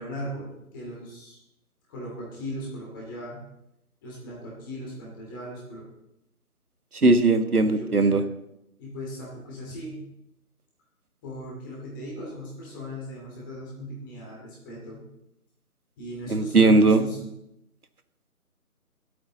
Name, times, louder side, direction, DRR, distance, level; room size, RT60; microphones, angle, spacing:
voice 1, 0.0-1.4 1.9-3.5 4.0-5.9 7.5-8.3 8.8-10.1 11.2-15.0 16.0-17.3, equal, 15° left, -4 dB, 2.6 m, -38 dB
voice 2, 7.0-8.2 16.3-17.0, right 3 dB, 75° right, 9 dB, 1.4 m, -18 dB
23.5 x 8.6 x 4.0 m, 0.84 s
figure-of-eight pair, 155°, 44 cm